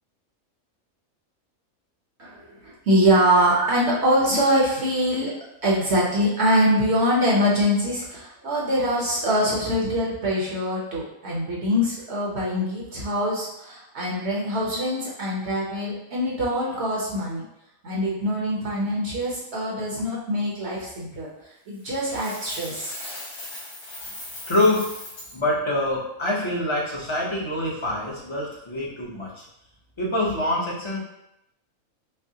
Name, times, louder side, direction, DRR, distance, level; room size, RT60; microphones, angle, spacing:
voice 1, 2.2-5.3 5.6-17.4 17.8-21.3 21.7-23.0, equal, 55° right, -4 dB, 1.0 m, -23 dB
Coin (dropping), 21.8-25.3, left 1 dB, 75° left, 1.7 m, -38 dB
voice 2, 24.5-24.9 25.3-29.5 30.0-31.0, left 1 dB, 25° left, -5 dB, 0.7 m, -25 dB
5.4 x 2.0 x 2.8 m, 0.84 s
omnidirectional pair, 1.5 m